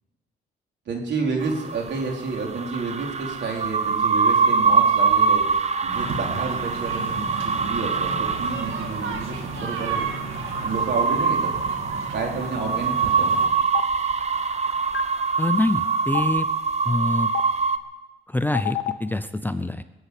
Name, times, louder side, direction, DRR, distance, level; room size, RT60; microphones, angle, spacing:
voice 1, 0.9-10.1 10.6-11.5 12.1-13.4, right 4 dB, 60° right, 0 dB, 4.1 m, -30 dB
sound 1, 1.4-17.8, right 5 dB, 35° right, 1.0 m, -24 dB
sound 2, 5.9-13.5, right 4 dB, 85° right, 2.1 m, -33 dB
Stream, 13.7-13.8 14.9-15.0 16.1-16.2 17.3-17.4 18.5-18.9, left 15 dB, 80° left, 1.1 m, -25 dB
voice 2, 15.4-16.5 16.9-17.3 18.3-19.8, left 2 dB, 10° left, 11 dB, 0.6 m, -25 dB
20.5 x 7.9 x 8.4 m, 1.1 s
cardioid pair, 90°, 20 cm